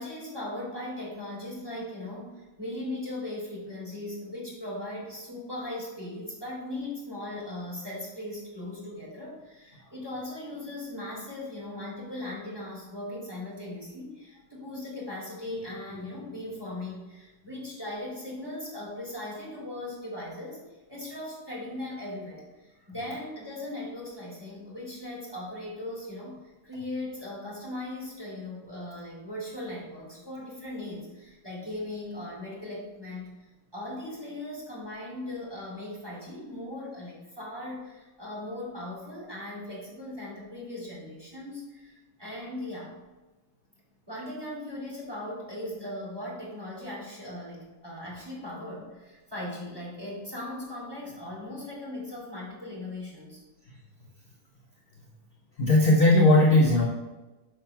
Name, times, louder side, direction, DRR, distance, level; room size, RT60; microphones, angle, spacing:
voice 1, 0.0-26.4 26.6-33.3 33.7-42.9 44.1-53.4, left 1 dB, 10° right, -5 dB, 2.8 m, -38 dB
voice 2, 55.6-56.9, left 2 dB, 50° left, -1 dB, 0.7 m, -18 dB
5.6 x 5.4 x 5.8 m, 1.1 s
omnidirectional pair, 2.0 m